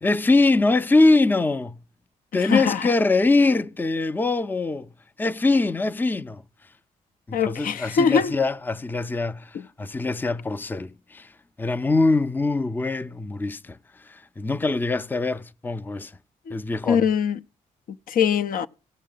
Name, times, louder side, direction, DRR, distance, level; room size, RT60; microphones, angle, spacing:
voice 1, 0.0-1.8 2.3-4.9 5.2-6.4 7.3-11.3 11.6-16.1 16.5-17.1, left 3 dB, 10° left, 0.5 m, -23 dB
voice 2, 7.3-8.3 16.5-16.6 16.9-17.4 18.1-18.7, left 7 dB, 65° left, 0.5 m, -22 dB
16.5 x 6.3 x 3.8 m
cardioid pair, 65°, 15 cm